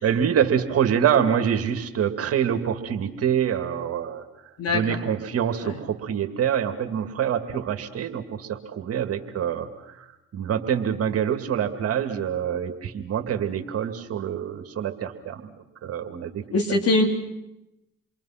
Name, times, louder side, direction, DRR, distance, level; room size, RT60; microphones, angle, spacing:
voice 1, 0.0-4.3 4.7-15.5 15.8-17.0, right 8 dB, 55° right, 7 dB, 2.3 m, -26 dB
voice 2, 16.5-17.0, left 2 dB, 55° left, 3 dB, 3.9 m, -21 dB
28.5 x 22.5 x 5.9 m, 0.93 s
supercardioid pair, 70°, 29 cm